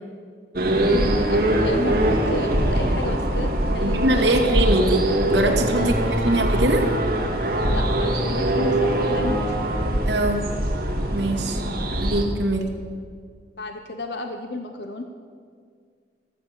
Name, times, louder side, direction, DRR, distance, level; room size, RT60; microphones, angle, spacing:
sound 1, 0.6-12.2, right 1 dB, 55° right, 2.1 m, -22 dB
voice 1, 0.9-4.4 5.8-5.9 7.6-9.7 13.6-15.0, left 2 dB, 70° left, 5 dB, 1.0 m, -32 dB
voice 2, 3.8-5.9 6.2-6.9 10.0-10.5 11.1-11.6 12.0-12.7, right 1 dB, 85° right, 2 dB, 2.2 m, -22 dB
15.0 x 13.5 x 6.8 m, 2.1 s
head